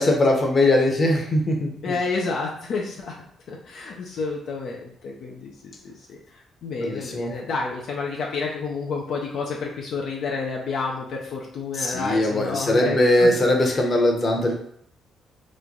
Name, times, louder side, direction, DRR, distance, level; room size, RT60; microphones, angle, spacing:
voice 1, 0.0-1.9 6.8-7.3 11.7-14.5, left 1 dB, 35° left, 0 dB, 0.8 m, -20 dB
voice 2, 1.8-13.4 13.6-13.8, left 4 dB, 70° left, -1 dB, 0.5 m, -30 dB
3.1 x 2.2 x 3.7 m, 0.67 s
cardioid pair, 90°, 0 cm